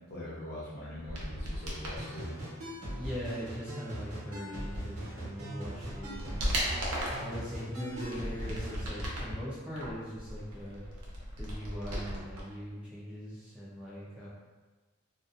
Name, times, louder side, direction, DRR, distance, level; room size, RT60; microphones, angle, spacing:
voice 1, 0.1-2.4, left 1 dB, 45° left, -7 dB, 0.7 m, -42 dB
sound 1, 1.0-2.0 5.1-5.2 5.6-7.3 7.9-9.4 9.8-12.4 12.7-12.8, equal, 90° right, 0.6 m, -36 dB
sound 2, 2.0-8.8, equal, 65° right, 0.9 m, -40 dB
voice 2, 3.0-6.6 7.2-10.9 11.4-14.3, equal, 5° right, -9 dB, 0.3 m, -41 dB
2.6 x 2.1 x 2.4 m, 1.3 s
head